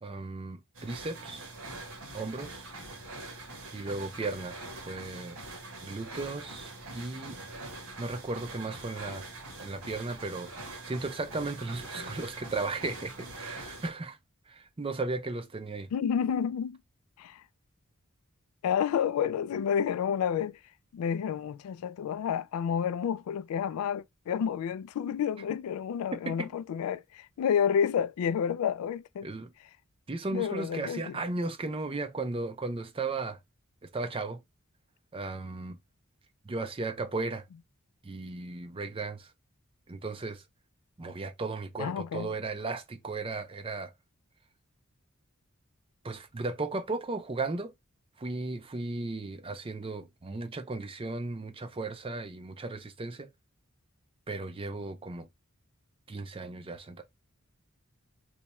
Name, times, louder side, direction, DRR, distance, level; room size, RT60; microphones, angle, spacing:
voice 1, 0.0-1.5 2.1-2.7 3.7-5.4 5.8-7.4 8.0-9.3 9.6-10.5 10.8-14.2 14.5-15.9 26.2-26.5 29.2-29.5 30.1-33.4 33.8-34.4 35.1-35.8 36.4-37.4 38.0-39.3 39.9-40.4 41.0-43.9 46.0-47.7 48.2-53.3 54.3-55.3 56.1-57.0, right 3 dB, 25° right, 0.4 m, -35 dB
sound 1, 0.7-13.9, right 2 dB, 80° right, 1.2 m, -44 dB
voice 2, 15.9-16.8 17.2-17.4 18.6-20.6 20.9-29.3 30.3-31.2 41.8-42.3, left 8 dB, 85° left, 0.3 m, -30 dB
2.9 x 2.3 x 4.1 m
head